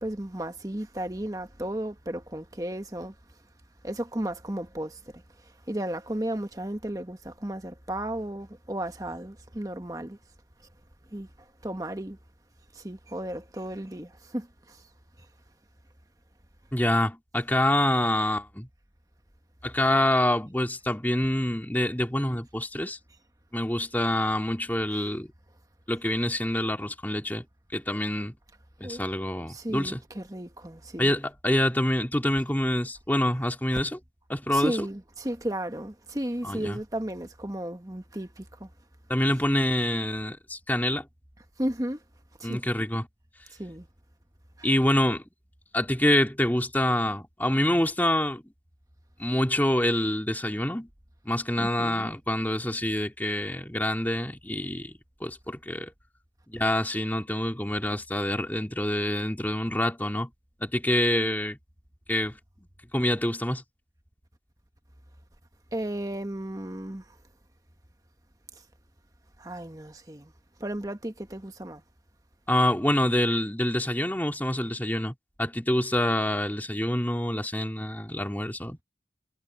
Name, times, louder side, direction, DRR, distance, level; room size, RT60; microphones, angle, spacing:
voice 1, 0.0-3.1 3.8-5.0 5.7-10.2 11.1-11.3 11.6-12.2 12.7-14.8 28.8-29.0 29.5-31.1 34.5-38.7 41.6-42.0 42.4-42.6 43.6-43.8 51.6-52.1 65.7-67.0 69.4-70.3 70.6-71.8, right 1 dB, 20° right, 1.4 m, -34 dB
voice 2, 16.7-18.7 19.6-23.0 23.5-25.3 25.9-27.4 27.7-28.3 28.8-30.0 31.0-34.0 34.3-34.8 36.4-36.8 39.1-41.1 42.4-43.1 44.6-45.2 45.7-48.4 49.2-50.9 51.3-55.9 56.5-60.3 60.6-61.6 62.1-62.4 62.9-63.6 72.5-78.8, left 1 dB, 10° left, 2.5 m, -26 dB
head